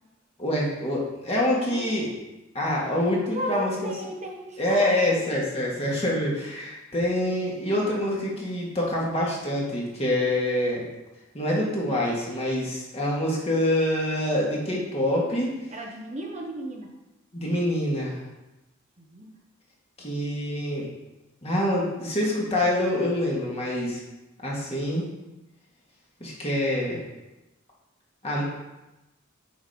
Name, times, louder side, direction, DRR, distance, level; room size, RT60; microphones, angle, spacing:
voice 1, 0.4-2.1 2.5-3.9 4.6-10.9 11.3-15.5 17.3-18.2 20.0-20.9 21.4-24.0 24.4-25.0 26.2-27.0 28.2-28.4, left 1 dB, 30° left, -4 dB, 2.0 m, -26 dB
voice 2, 3.3-5.4 15.7-16.9 19.0-19.3, equal, 35° right, 0 dB, 0.9 m, -35 dB
7.2 x 5.2 x 5.1 m, 1.0 s
head